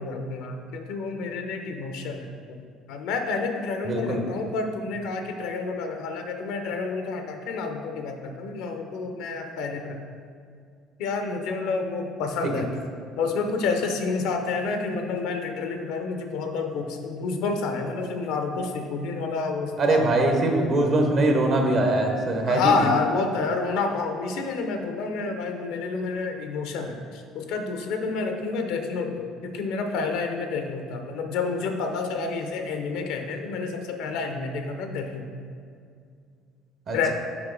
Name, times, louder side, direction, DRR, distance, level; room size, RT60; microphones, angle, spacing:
voice 1, 0.0-2.6 2.9-10.0 11.0-12.7 13.2-20.1 22.5-35.2 36.9-37.1, left 4 dB, 75° left, 5 dB, 0.6 m, -29 dB
voice 2, 3.8-4.3 19.8-22.9 36.9-37.1, right 2 dB, 50° right, 3 dB, 1.0 m, -22 dB
6.0 x 4.9 x 3.8 m, 2.3 s
hypercardioid pair, 70°, 0 cm